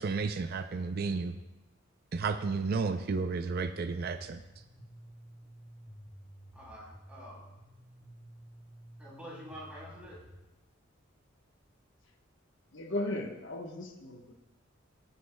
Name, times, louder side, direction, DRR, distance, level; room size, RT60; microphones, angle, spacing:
voice 1, 0.0-1.4 2.1-4.4, right 4 dB, 50° right, 8 dB, 0.4 m, -32 dB
sound 1, 3.5-10.4, equal, 45° left, 2.9 m, -53 dB
voice 2, 6.5-7.4 9.0-10.2, equal, 5° right, -6 dB, 4.0 m, -47 dB
voice 3, 12.7-14.3, left 1 dB, 60° left, 3 dB, 1.1 m, -36 dB
17.5 x 9.4 x 2.2 m, 1.0 s
head